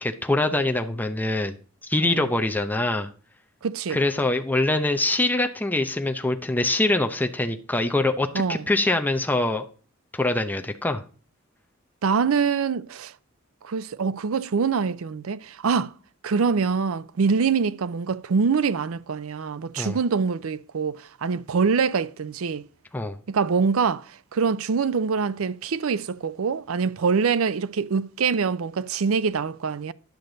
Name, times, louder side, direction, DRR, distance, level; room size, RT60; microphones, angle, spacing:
voice 1, 0.0-1.5 1.8-3.1 3.9-9.6 10.1-11.0 19.8-20.0 22.9-23.2, left 2 dB, 10° left, 0.6 m, -24 dB
voice 2, 3.6-4.0 8.3-8.6 12.0-13.1 13.6-15.9 16.2-22.6 23.3-29.9, right 5 dB, 85° right, 0.5 m, -24 dB
10.5 x 6.5 x 3.9 m
head